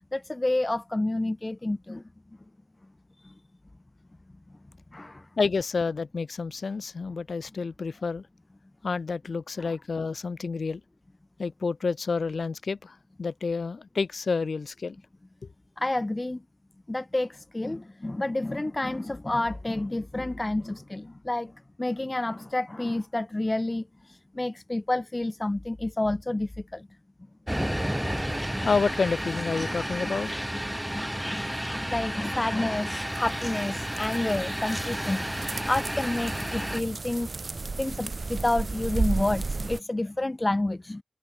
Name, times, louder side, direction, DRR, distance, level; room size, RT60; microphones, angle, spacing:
voice 1, 0.1-2.0 3.2-3.3 4.9-5.3 9.6-9.8 15.8-16.4 16.9-21.5 21.8-26.9 27.6-27.8 30.7-37.3 37.8-41.0, left 2 dB, 30° left, 0.8 m, -29 dB
voice 2, 5.4-8.2 8.8-10.8 11.4-15.0 28.6-30.5, left 4 dB, 90° left, 1.1 m, -29 dB
sound 1, 27.5-36.8, equal, 5° right, 2.1 m, -31 dB
sound 2, 32.9-39.8, right 3 dB, 60° right, 0.7 m, -34 dB
wide cardioid pair, 65°, 0 cm